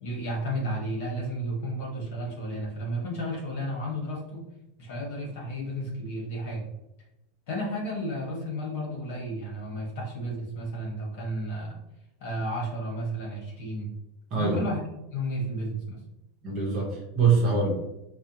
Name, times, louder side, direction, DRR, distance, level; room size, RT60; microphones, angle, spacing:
voice 1, 0.0-4.4 4.8-6.7 7.5-11.8 12.2-13.9 14.4-14.8 15.1-16.0, equal, 50° left, -2 dB, 1.4 m, -32 dB
voice 2, 16.4-17.7, right 5 dB, 30° right, -3 dB, 1.1 m, -24 dB
4.7 x 2.3 x 2.9 m, 0.91 s
supercardioid pair, 175°, 0 cm